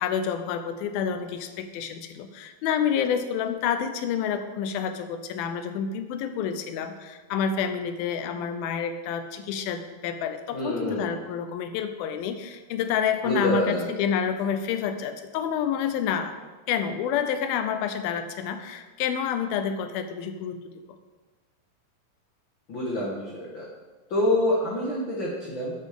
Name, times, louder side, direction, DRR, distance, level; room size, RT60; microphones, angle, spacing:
voice 1, 0.0-16.4 16.7-20.6, left 8 dB, 85° left, 8 dB, 2.5 m, -28 dB
voice 2, 10.5-11.1 13.2-13.8 22.7-23.6 24.1-25.7, left 1 dB, 55° left, -4 dB, 1.4 m, -26 dB
11.5 x 8.3 x 3.6 m, 1.3 s
omnidirectional pair, 4.2 m